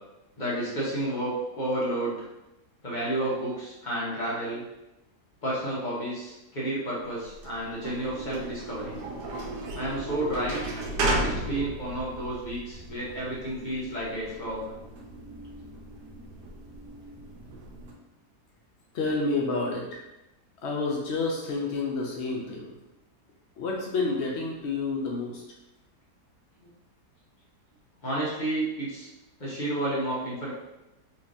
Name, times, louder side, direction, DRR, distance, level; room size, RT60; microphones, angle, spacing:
voice 1, 0.4-2.3 2.8-4.6 5.4-9.0 9.7-10.6 11.2-14.7 17.5-17.6 26.6-26.7 28.0-29.1 29.4-30.5, right 1 dB, 30° left, -6 dB, 1.0 m, -31 dB
sound 1, 7.2-17.9, right 1 dB, 90° right, 1.2 m, -35 dB
voice 2, 18.9-20.0 20.6-22.7 23.6-25.4, left 3 dB, 90° left, -1 dB, 0.6 m, -29 dB
3.6 x 2.9 x 2.6 m, 0.95 s
omnidirectional pair, 1.8 m